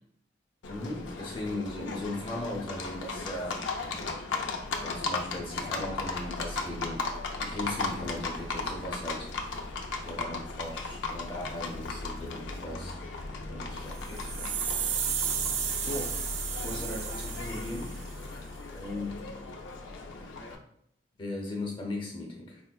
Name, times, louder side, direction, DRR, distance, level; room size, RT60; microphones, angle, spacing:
Livestock farm animals working animals, 0.6-20.5, left 3 dB, 90° left, 0.5 m, -36 dB
voice 1, 0.7-3.6 4.8-9.3 10.0-13.0 13.5-14.6 15.1-16.2 16.5-18.0 18.7-19.3 21.2-22.6, left 1 dB, 25° left, -1 dB, 0.7 m, -38 dB
sound 1, 13.9-18.1, right 8 dB, 90° right, 0.4 m, -33 dB
4.3 x 2.1 x 2.2 m, 0.71 s
head